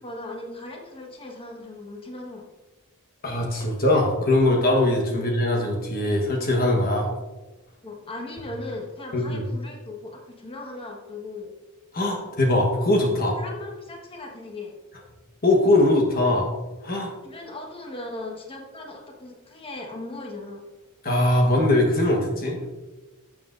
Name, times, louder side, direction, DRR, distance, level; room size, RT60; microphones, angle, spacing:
voice 1, 0.0-2.5 5.1-5.2 7.1-7.2 7.8-11.5 13.2-14.7 17.2-20.6, left 2 dB, 25° left, 0 dB, 1.3 m, -38 dB
voice 2, 3.2-7.1 9.1-9.4 11.9-13.3 15.4-16.5 16.8-17.1 21.0-22.7, left 1 dB, 45° left, 0 dB, 1.3 m, -21 dB
11.5 x 7.5 x 2.6 m, 1.1 s
head